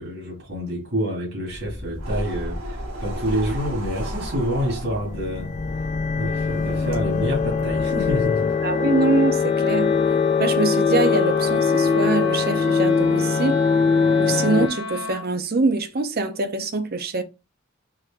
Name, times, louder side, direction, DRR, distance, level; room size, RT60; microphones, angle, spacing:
voice 1, 0.0-5.5 6.2-8.5, equal, 65° right, 2.0 m, -27 dB
sound 1, 1.5-8.3, equal, 85° right, 1.9 m, -33 dB
Wind instrument woodwind instrument, 3.8-15.3, left 3 dB, 65° left, 1.0 m, -36 dB
sound 2, 5.1-14.7, left 5 dB, 35° left, 0.3 m, -21 dB
voice 2, 8.6-9.9 10.4-13.6 14.2-17.2, right 3 dB, 50° right, 0.7 m, -24 dB
4.7 x 2.6 x 3.5 m
head